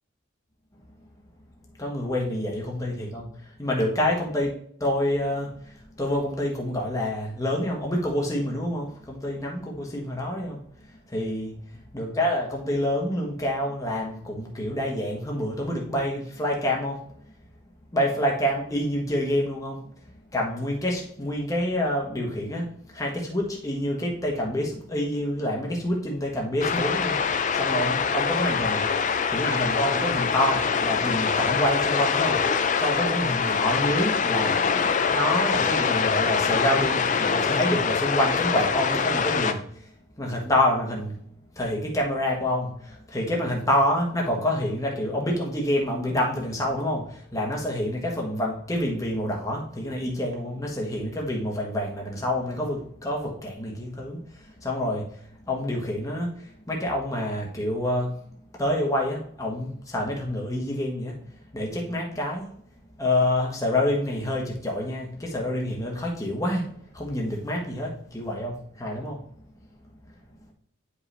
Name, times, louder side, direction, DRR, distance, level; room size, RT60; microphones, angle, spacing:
voice 1, 1.8-3.3 3.6-4.5 4.8-10.6 11.1-11.5 11.9-17.0 17.9-19.8 20.3-34.8 35.1-39.9 40.2-41.2 41.5-58.2 58.5-62.5 63.0-66.7 66.9-69.2, left 1 dB, 15° left, -1 dB, 1.2 m, -27 dB
sound 1, 26.6-39.5, left 6 dB, 40° left, 0.5 m, -24 dB
9.4 x 5.0 x 3.3 m, 0.63 s
head